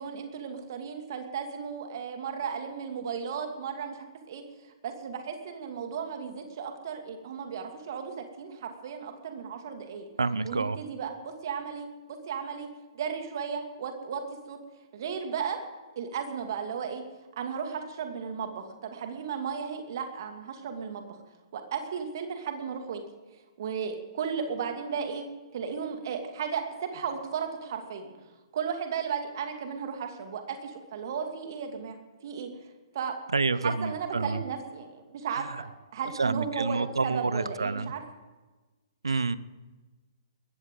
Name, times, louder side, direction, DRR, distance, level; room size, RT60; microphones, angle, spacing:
voice 1, 0.0-4.4 4.8-10.1 10.4-12.7 12.9-14.6 14.9-15.6 16.0-17.0 17.4-21.2 21.5-23.0 23.6-25.2 25.5-28.1 28.5-32.0 32.2-32.5 32.9-33.2 33.5-35.7 35.9-38.0, right 6 dB, 50° right, 5 dB, 2.4 m, -35 dB
voice 2, 10.2-10.8 33.3-34.4 36.2-37.9 39.0-39.4, right 4 dB, 75° right, 17 dB, 0.7 m, -28 dB
21.0 x 15.0 x 3.9 m, 1.2 s
figure-of-eight pair, 120°, 3 cm